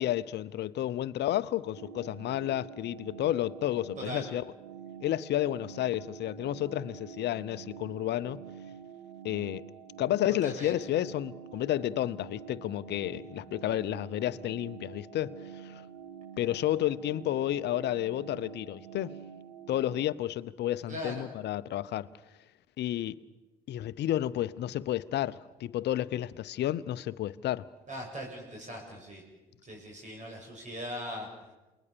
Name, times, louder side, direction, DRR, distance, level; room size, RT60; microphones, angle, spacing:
voice 1, 0.0-4.5 5.0-8.4 9.2-9.6 10.0-15.8 16.4-19.2 19.7-22.1 22.8-23.2 23.7-27.7, left 13 dB, 60° left, 0.9 m, -31 dB
sound 1, 1.7-20.1, right 8 dB, 80° right, 1.4 m, -47 dB
voice 2, 4.0-4.3 10.4-10.8 20.9-21.2 27.9-29.2 29.7-31.3, equal, 40° right, 7.9 m, -40 dB
28.5 x 21.5 x 7.0 m
hypercardioid pair, 55°, 20 cm